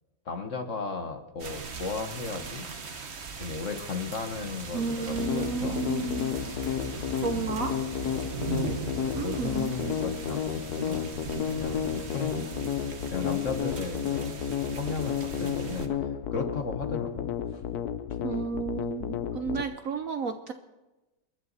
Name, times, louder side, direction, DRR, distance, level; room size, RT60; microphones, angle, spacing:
voice 1, 0.2-2.7 3.4-5.8 6.4-6.7 7.3-7.6 8.4-10.4 10.8-11.1 11.5-12.4 13.1-14.4 14.7-17.3, left 4 dB, 45° left, 6 dB, 1.5 m, -35 dB
sound 1, 1.4-15.9, right 4 dB, 40° right, 1.3 m, -39 dB
sound 2, 4.5-10.1, left 2 dB, 80° left, 3.3 m, -48 dB
voice 2, 4.7-6.4 7.2-7.7 9.1-9.7 18.2-20.5, right 5 dB, 60° right, 8 dB, 1.0 m, -32 dB
sound 3, 5.2-19.6, left 8 dB, 65° left, 1.1 m, -32 dB
28.0 x 11.0 x 4.1 m, 1.1 s
omnidirectional pair, 1.9 m